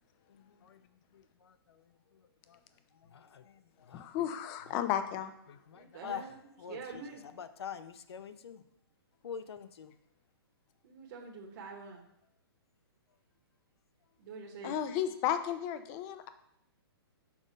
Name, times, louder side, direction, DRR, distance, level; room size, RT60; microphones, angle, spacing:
voice 1, 0.3-2.6 2.9-4.1 4.7-4.8 5.5-7.0 7.3-8.6 9.2-9.9, left 8 dB, 75° left, 11 dB, 0.6 m, -46 dB
voice 2, 3.9-5.3 14.6-16.3, left 10 dB, 20° left, 10 dB, 0.3 m, -33 dB
voice 3, 5.7-6.4 6.7-7.2 10.8-12.0 14.2-14.8, right 4 dB, 45° right, -1 dB, 1.1 m, -45 dB
6.1 x 3.9 x 5.1 m, 0.77 s
hypercardioid pair, 160°, 13 cm